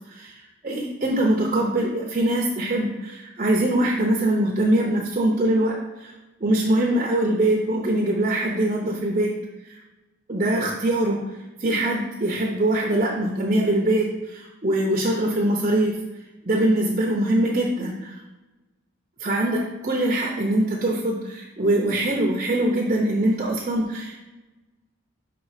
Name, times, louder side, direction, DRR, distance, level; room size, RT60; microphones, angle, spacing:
voice 1, 0.6-6.1 6.4-9.3 9.7-9.8 10.3-11.2 11.6-16.0 16.4-18.2 19.2-24.2, right 1 dB, 35° right, -1 dB, 0.7 m, -23 dB
5.6 x 4.2 x 4.9 m, 1.1 s
head